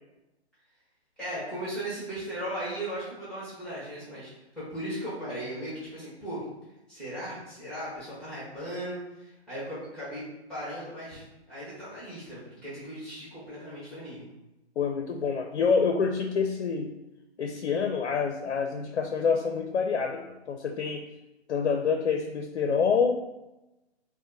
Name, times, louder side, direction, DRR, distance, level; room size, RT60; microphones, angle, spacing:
voice 1, 1.2-6.4 6.9-10.2 10.5-14.3, right 1 dB, ahead, -10 dB, 1.2 m, -37 dB
voice 2, 14.8-16.9 17.4-21.1 21.5-23.2, left 5 dB, 70° left, 3 dB, 0.5 m, -27 dB
4.3 x 2.1 x 2.6 m, 0.97 s
hypercardioid pair, 140°, 34 cm